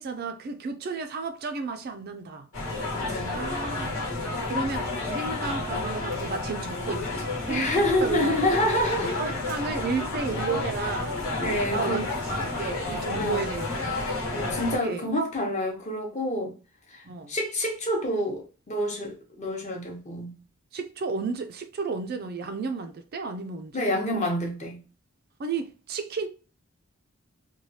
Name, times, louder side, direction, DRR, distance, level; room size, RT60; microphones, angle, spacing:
voice 1, 0.0-2.5 3.2-4.0 4.4-8.6 9.2-13.9 14.5-15.1 17.1-17.3 20.7-23.9 25.4-26.3, right 4 dB, 45° right, 0.3 m, -33 dB
sound 1, 2.5-14.8, left 2 dB, 70° left, 1.2 m, -31 dB
voice 2, 2.9-3.3 7.5-9.2 11.4-12.0 13.1-13.4 14.1-16.5 16.9-20.3 23.7-24.8, left 1 dB, 30° left, 0.8 m, -28 dB
3.1 x 2.3 x 2.6 m
head